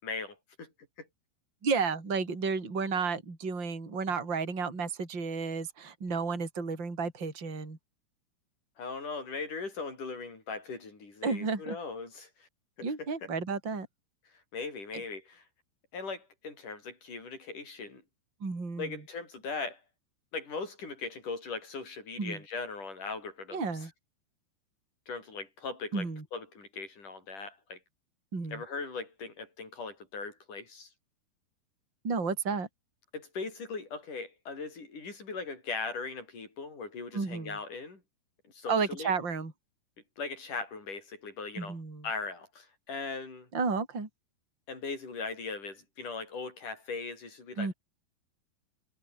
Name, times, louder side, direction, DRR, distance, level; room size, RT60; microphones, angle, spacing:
voice 1, 0.0-0.7 1.0-1.1 8.8-12.5 12.8-13.3 14.5-15.4 15.9-18.0 18.8-19.8 20.3-23.9 25.1-27.8 28.5-30.9 33.1-38.0 38.5-39.1 40.2-41.8 42.0-43.5 44.7-47.7, left 4 dB, 40° left, 9.2 m, -39 dB
voice 2, 1.6-7.8 11.2-11.8 12.8-13.9 18.4-18.9 22.2-22.4 23.5-23.9 25.9-26.2 28.3-28.6 32.0-32.7 37.1-37.6 38.7-39.5 41.6-42.0 43.5-44.1 47.6-47.7, right 4 dB, 25° right, 5.5 m, -32 dB
omnidirectional pair, 5.5 m